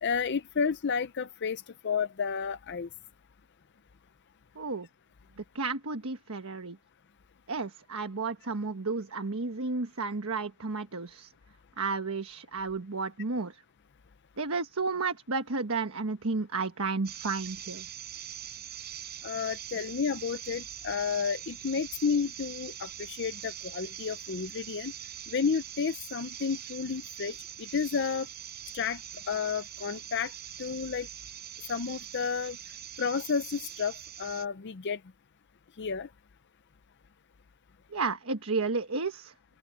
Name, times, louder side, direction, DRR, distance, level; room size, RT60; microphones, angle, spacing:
voice 1, 0.0-2.9 19.2-24.9 25.3-28.3 28.7-29.0 29.3-30.3 30.6-31.1 31.7-32.6 33.0-35.0 35.8-36.1, left 6 dB, 50° left, 0.5 m, -31 dB
voice 2, 4.5-4.9 5.5-6.8 7.5-11.3 11.8-13.6 14.4-17.9 37.9-39.3, right 4 dB, 70° right, 1.3 m, -32 dB
sound 1, 17.0-34.5, right 10 dB, 45° right, 6.0 m, -43 dB
open air
head